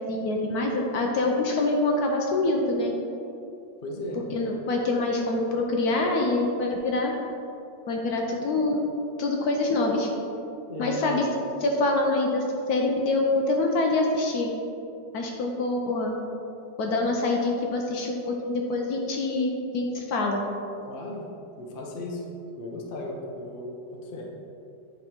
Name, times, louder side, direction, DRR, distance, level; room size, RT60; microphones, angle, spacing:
voice 1, 0.1-2.9 4.3-7.1 7.9-8.8 9.2-10.1 10.8-11.3 11.6-14.5 15.1-16.1 16.8-20.4, left 2 dB, 65° left, 1 dB, 1.1 m, -25 dB
voice 2, 3.8-4.2 10.7-11.2 20.9-21.3 21.6-22.3 22.6-24.3, left 2 dB, 45° left, -1 dB, 0.7 m, -36 dB
9.0 x 3.7 x 4.4 m, 2.6 s
omnidirectional pair, 2.0 m